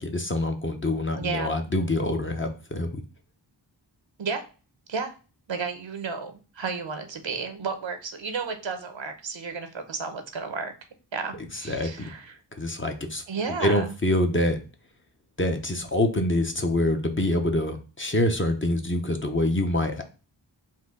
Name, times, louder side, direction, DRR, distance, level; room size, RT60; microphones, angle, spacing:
voice 1, 0.0-3.0 11.6-12.1 12.5-13.2 13.6-14.6 15.4-20.0, left 1 dB, 25° left, 5 dB, 0.8 m, -25 dB
voice 2, 1.1-1.5 4.2-4.4 4.9-5.1 5.5-10.7 11.1-12.4 13.3-13.9, right 5 dB, 75° right, 7 dB, 1.0 m, -32 dB
4.3 x 2.7 x 3.7 m, 0.34 s
wide cardioid pair, 55°, 45 cm